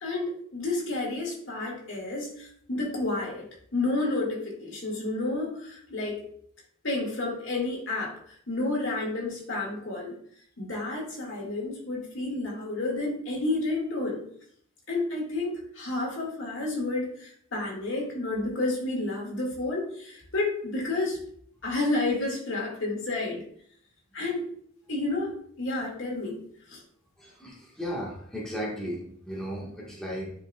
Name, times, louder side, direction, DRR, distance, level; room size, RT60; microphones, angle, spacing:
voice 1, 0.0-3.4 3.7-6.2 6.8-8.1 8.5-10.2 10.6-14.2 14.9-21.2 21.6-23.4 24.1-24.5 24.9-26.4 26.7-26.8, left 2 dB, 70° left, -2 dB, 2.0 m, -30 dB
voice 2, 27.2-30.3, equal, 5° left, -5 dB, 1.4 m, -35 dB
9.8 x 4.4 x 2.3 m, 0.64 s
head